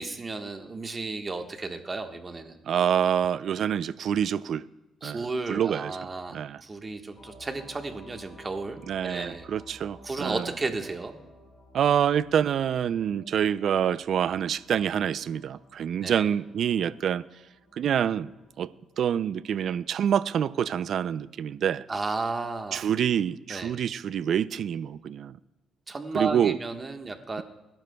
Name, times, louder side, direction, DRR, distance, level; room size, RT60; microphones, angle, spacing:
voice 1, 0.0-2.6 5.0-8.8 9.0-9.4 10.0-11.2 16.0-16.3 21.9-22.8 23.5-23.7 25.9-27.4, right 3 dB, 30° right, 1.3 m, -33 dB
voice 2, 2.7-4.6 5.0-6.0 6.3-6.6 8.9-10.5 11.7-17.2 17.7-18.3 18.6-21.8 22.7-25.4 26.1-26.6, right 9 dB, 65° right, 0.4 m, -26 dB
sound 1, 7.2-19.7, equal, 25° left, 4.6 m, -54 dB
24.0 x 12.0 x 2.3 m
cardioid pair, 90°, 0 cm